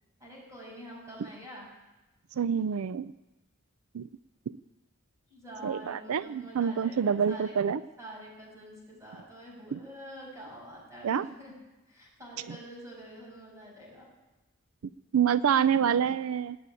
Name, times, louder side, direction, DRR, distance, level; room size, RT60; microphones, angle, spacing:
voice 1, 0.2-1.7 5.3-7.5 8.0-11.5 11.9-14.1, equal, 15° right, -3 dB, 6.7 m, -46 dB
voice 2, 2.4-3.1 3.9-4.1 4.5-4.6 5.6-7.8 9.7-9.8 11.0-11.3 12.5-12.6 15.1-16.6, right 7 dB, 85° right, 16 dB, 0.4 m, -27 dB
18.0 x 8.6 x 9.1 m, 1.1 s
head